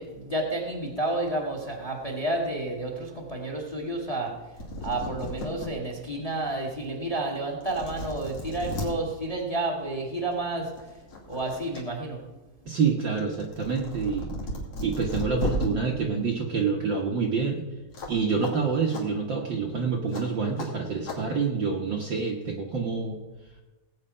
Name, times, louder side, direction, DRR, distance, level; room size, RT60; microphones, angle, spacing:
voice 1, 0.0-4.3 4.8-10.7 11.3-12.2, right 2 dB, 15° left, 2 dB, 1.4 m, -30 dB
sound 1, 4.3-4.4 4.6-5.7 6.2-6.3 7.2-7.3 7.6-8.9 10.2-10.4 10.8-11.8 12.2-15.7 17.9-18.2 18.4-18.5 18.9-19.0 20.1-20.2 20.6-20.7 21.0-21.2, left 1 dB, 50° left, 3.5 m, -34 dB
voice 2, 12.7-14.3 14.8-17.6 18.1-23.2, right 5 dB, 90° right, 0 dB, 1.0 m, -27 dB
18.0 x 8.7 x 5.6 m, 1.1 s
omnidirectional pair, 3.9 m